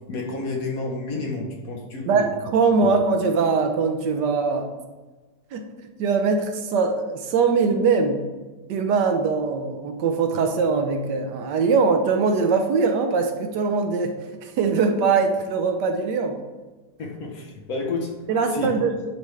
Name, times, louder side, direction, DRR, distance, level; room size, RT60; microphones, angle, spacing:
voice 1, 0.1-2.3 2.8-2.9 17.0-18.1 18.5-18.7, left 3 dB, 60° left, 1 dB, 1.1 m, -30 dB
voice 2, 2.1-4.7 5.5-5.7 6.0-8.2 8.7-16.4 18.3-19.1, right 4 dB, 75° right, 5 dB, 1.2 m, -22 dB
10.0 x 3.4 x 3.1 m, 1.2 s
omnidirectional pair, 2.0 m